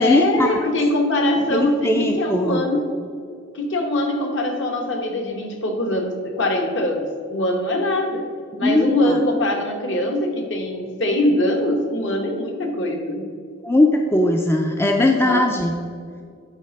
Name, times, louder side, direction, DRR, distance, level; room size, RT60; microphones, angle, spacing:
voice 1, 0.0-2.9 3.5-8.3 8.6-13.3 15.2-15.5, left 1 dB, 60° left, 3 dB, 1.2 m, -22 dB
voice 2, 1.5-2.6 8.5-9.0 13.6-15.7, left 1 dB, 10° left, 3 dB, 0.4 m, -19 dB
9.7 x 4.3 x 5.2 m, 2.3 s
head